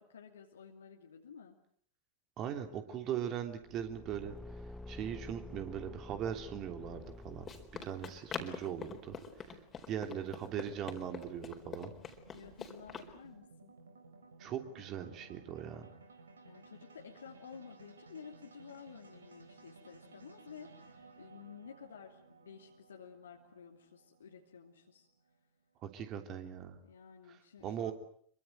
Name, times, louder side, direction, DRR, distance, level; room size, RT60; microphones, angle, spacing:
voice 1, 0.0-1.6 12.3-13.8 16.4-25.1 26.8-27.9, left 7 dB, 65° left, 1 dB, 2.6 m, -53 dB
voice 2, 2.4-4.3 4.9-7.5 7.8-9.5 9.9-11.9 14.4-15.9 25.8-26.8 27.6-27.9, right 9 dB, 35° right, 6 dB, 3.1 m, -40 dB
Car / Engine, 3.6-8.1, left 1 dB, 5° left, 1.1 m, -49 dB
Run, 6.9-13.1, left 5 dB, 20° left, 4.1 m, -46 dB
sound 1, 9.7-25.6, right 3 dB, 75° right, 4.1 m, -59 dB
26.5 x 23.5 x 7.8 m, 0.62 s
figure-of-eight pair, 90°, 0 cm